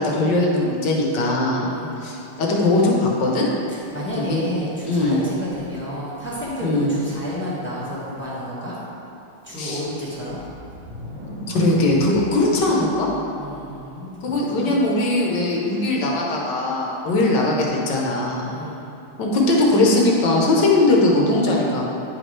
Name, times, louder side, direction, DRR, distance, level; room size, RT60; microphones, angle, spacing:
voice 1, 0.0-1.7 2.0-3.5 4.2-4.4 4.8-5.2 6.6-6.9 9.6-9.8 11.5-13.1 14.2-18.5 19.2-21.8, left 2 dB, 60° left, -2 dB, 1.4 m, -20 dB
voice 2, 1.7-2.0 3.7-8.8 9.4-10.4 13.4-14.8 17.0-17.3 18.5-18.9, equal, 5° left, -9 dB, 1.2 m, -31 dB
sound 1, 10.2-13.9, equal, 60° right, 2.6 m, -39 dB
9.9 x 4.8 x 3.3 m, 2.8 s
omnidirectional pair, 2.3 m